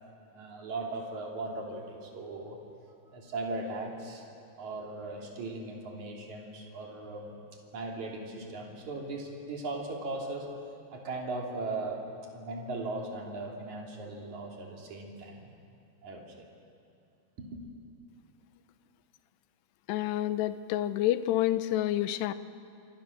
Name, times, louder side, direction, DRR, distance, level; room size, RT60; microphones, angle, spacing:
voice 1, 0.3-2.6 3.1-4.3 4.6-7.4 7.7-10.5 10.9-12.0 12.3-15.5 16.0-16.4 17.4-17.6, right 2 dB, 45° right, 0 dB, 4.2 m, -38 dB
voice 2, 19.9-22.3, left 13 dB, 85° left, 12 dB, 2.9 m, -28 dB
29.5 x 25.0 x 6.6 m, 2.7 s
omnidirectional pair, 4.8 m